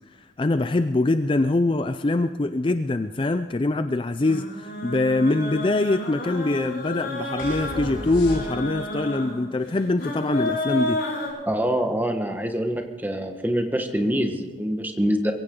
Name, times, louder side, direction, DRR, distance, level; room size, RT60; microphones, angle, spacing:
voice 1, 0.4-11.0, left 2 dB, 25° left, 10 dB, 0.4 m, -23 dB
sound 1, 4.2-11.3, left 1 dB, 65° left, 5.2 m, -31 dB
sound 2, 7.4-8.9, equal, 80° left, 4.9 m, -34 dB
voice 2, 11.5-15.3, equal, 10° right, 5 dB, 1.3 m, -25 dB
22.5 x 16.0 x 3.8 m, 1.4 s
head